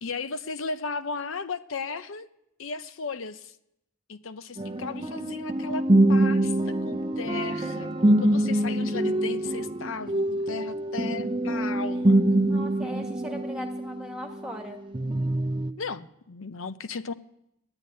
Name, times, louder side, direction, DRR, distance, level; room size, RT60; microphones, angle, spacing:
voice 1, 0.0-2.3 2.6-3.6 4.1-12.2 15.8-17.1, left 4 dB, 75° left, 12 dB, 0.7 m, -35 dB
sound 1, 4.6-14.6 14.9-15.7, right 1 dB, 25° right, 0.6 m, -25 dB
voice 2, 12.3-14.8, equal, 5° right, 0 dB, 1.6 m, -38 dB
11.0 x 9.9 x 9.4 m, 0.83 s
head